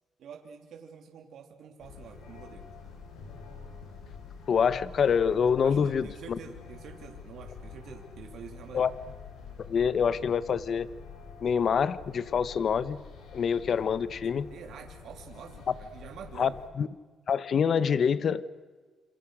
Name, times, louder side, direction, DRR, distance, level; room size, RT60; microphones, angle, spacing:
voice 1, 0.2-2.6 5.6-8.9 14.5-16.6, right 7 dB, 70° right, 3 dB, 3.3 m, -47 dB
sound 1, 1.8-16.7, left 5 dB, 85° left, 7.1 m, -47 dB
voice 2, 4.5-6.4 8.7-8.9 9.7-10.9 11.4-13.0 13.3-14.5 16.4-16.5 16.8-16.9 17.3-18.4, left 7 dB, 55° left, 16 dB, 1.3 m, -26 dB
28.0 x 27.5 x 6.5 m, 1.4 s
cardioid pair, 90°, 0 cm